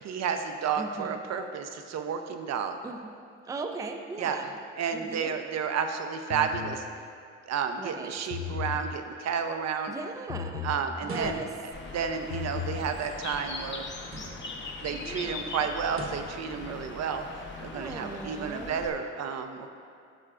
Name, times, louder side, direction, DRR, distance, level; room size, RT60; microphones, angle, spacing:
voice 1, 0.0-2.8 4.2-4.4 4.8-6.8 7.5-9.9 10.6-11.4 11.9-13.8 14.8-17.2 17.6-19.7, right 6 dB, 60° right, 6 dB, 0.5 m, -31 dB
voice 2, 0.8-1.2 2.8-3.1 3.5-4.6 4.9-5.3 7.8-8.1 9.9-10.7 11.0-11.5 15.0-15.6 17.7-18.8, right 3 dB, 10° right, 4 dB, 0.4 m, -38 dB
sound 1, 6.3-6.8 8.2-8.8 10.3-10.8 12.2-12.8, left 8 dB, 75° left, 0.6 m, -35 dB
sound 2, 11.0-11.8 14.0-14.7 15.9-16.4, right 2 dB, 45° right, 1.0 m, -40 dB
Bird, 11.7-18.9, left 3 dB, 35° left, 0.8 m, -40 dB
11.5 x 4.3 x 2.5 m, 2.3 s
cardioid pair, 90°, 30 cm